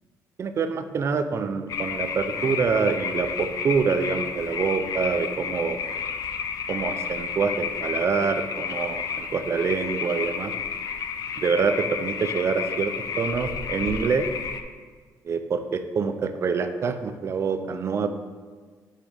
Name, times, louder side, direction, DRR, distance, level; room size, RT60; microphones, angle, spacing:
voice 1, 0.4-5.8 6.7-10.5 11.4-14.3 15.2-18.1, right 5 dB, 40° right, 8 dB, 0.5 m, -26 dB
sound 1, 1.7-14.6, left 6 dB, 55° left, 0.5 m, -31 dB
8.5 x 5.6 x 3.4 m, 1.5 s
cardioid pair, 125°, 7 cm